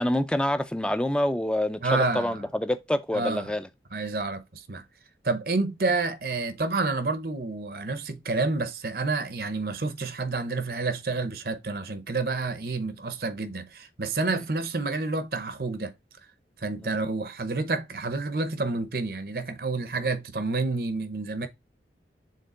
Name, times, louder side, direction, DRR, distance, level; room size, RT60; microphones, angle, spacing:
voice 1, 0.0-3.7 16.8-16.9, left 1 dB, 5° left, 0.5 m, -27 dB
voice 2, 1.8-2.4 3.1-3.5 3.9-4.8 5.2-15.9 16.6-21.5, right 3 dB, 55° right, 0.8 m, -29 dB
6.6 x 3.8 x 3.7 m
head